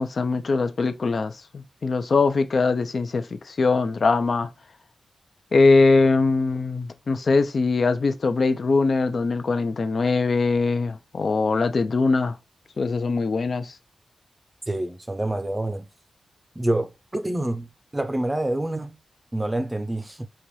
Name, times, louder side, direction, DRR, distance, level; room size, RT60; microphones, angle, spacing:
voice 1, 0.0-4.5 5.5-12.4 12.8-13.8, left 3 dB, 60° left, 0.7 m, -22 dB
voice 2, 14.7-15.9 16.6-17.7 17.9-19.0 19.3-20.3, right 1 dB, 20° right, 0.6 m, -27 dB
5.1 x 2.9 x 3.1 m
wide cardioid pair, 105°, 0 cm